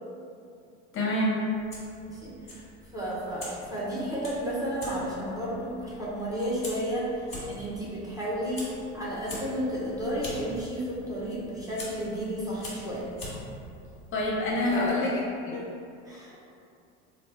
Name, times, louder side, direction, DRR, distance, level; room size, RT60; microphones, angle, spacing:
voice 1, 0.9-1.5 14.1-15.2 15.5-15.6, left 1 dB, 35° left, -4 dB, 0.7 m, -26 dB
Fire, 1.5-14.9, left 1 dB, 15° left, 1.2 m, -45 dB
voice 2, 2.0-2.6 2.9-8.7 8.9-13.1 14.7-15.1 15.5-15.6 16.1-16.4, equal, 10° right, -7 dB, 0.7 m, -32 dB
3.2 x 2.4 x 3.3 m, 2.5 s
supercardioid pair, 105°, 36 cm